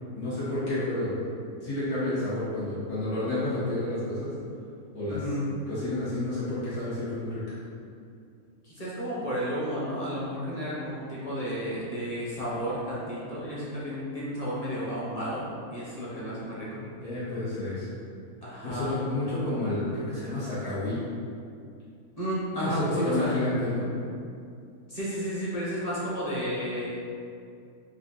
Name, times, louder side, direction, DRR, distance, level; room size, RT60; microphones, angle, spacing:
voice 1, 0.1-1.3 1.6-4.3 4.9-5.3 5.7-7.4 17.0-17.9 18.7-21.0 22.7-23.9, left 1 dB, 80° left, -12 dB, 1.9 m, -30 dB
voice 2, 5.1-5.5 8.6-16.8 18.4-19.0 22.2-23.4 24.9-26.9, equal, 30° left, -8 dB, 0.8 m, -32 dB
4.3 x 2.5 x 3.7 m, 2.4 s
omnidirectional pair, 1.5 m